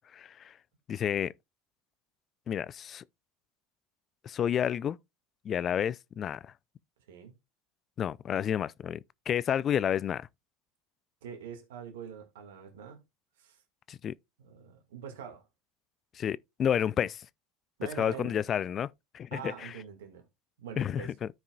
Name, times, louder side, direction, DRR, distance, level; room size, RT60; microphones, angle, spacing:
voice 1, 0.1-0.6 0.9-1.3 2.5-3.0 4.2-5.0 5.4-6.5 8.0-10.3 13.9-14.1 16.1-17.2 18.0-19.7 20.8-21.3, left 9 dB, 40° left, 0.4 m, -30 dB
voice 2, 11.2-13.0 13.4-13.6 14.4-15.4 17.8-18.3 19.3-20.2 20.6-21.2, right 8 dB, 80° right, 1.9 m, -44 dB
14.0 x 4.8 x 2.3 m
hypercardioid pair, 85°, 0 cm